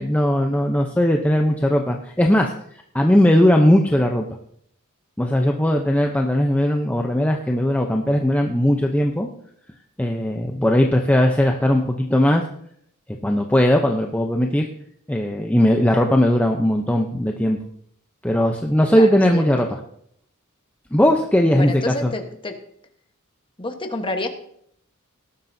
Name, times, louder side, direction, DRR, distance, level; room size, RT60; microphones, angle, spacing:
voice 1, 0.0-2.5 2.9-4.3 5.2-9.3 10.0-12.4 13.2-14.7 15.1-17.6 18.2-19.7 20.9-22.1, left 1 dB, 5° left, 2 dB, 0.7 m, -18 dB
voice 2, 18.9-19.8 21.5-22.5 23.6-24.3, left 2 dB, 25° left, 5 dB, 1.2 m, -29 dB
18.5 x 12.0 x 2.7 m, 0.69 s
head